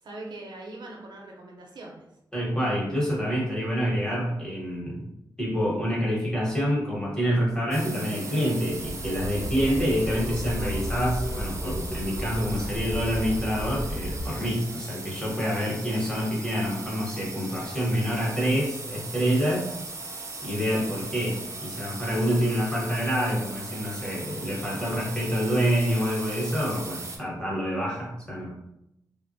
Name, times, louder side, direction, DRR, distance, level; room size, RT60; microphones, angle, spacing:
voice 1, 0.0-2.0, right 2 dB, 80° right, -1 dB, 0.7 m, -41 dB
voice 2, 2.3-5.1 5.4-19.7 20.4-28.5, equal, 10° left, -5 dB, 0.9 m, -27 dB
sound 1, 7.7-27.2, right 3 dB, 40° right, 0.4 m, -39 dB
sound 2, 8.7-14.3, equal, 80° left, 0.6 m, -33 dB
3.2 x 2.1 x 2.6 m, 0.82 s
wide cardioid pair, 140°, 8 cm